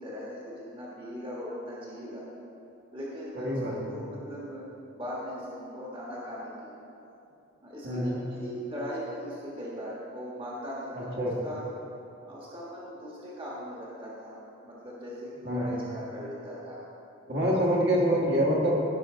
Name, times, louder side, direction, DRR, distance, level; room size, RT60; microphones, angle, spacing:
voice 1, 0.0-2.2 2.9-3.5 3.9-4.6 4.9-6.8 7.6-11.2 11.4-11.6 12.3-16.8 17.4-17.6, equal, 25° right, -6 dB, 1.4 m, -39 dB
voice 2, 3.3-3.9 7.8-8.2 10.9-11.4 15.4-15.7 17.3-18.8, equal, 55° right, -4 dB, 1.7 m, -26 dB
15.5 x 5.5 x 3.7 m, 2.8 s
head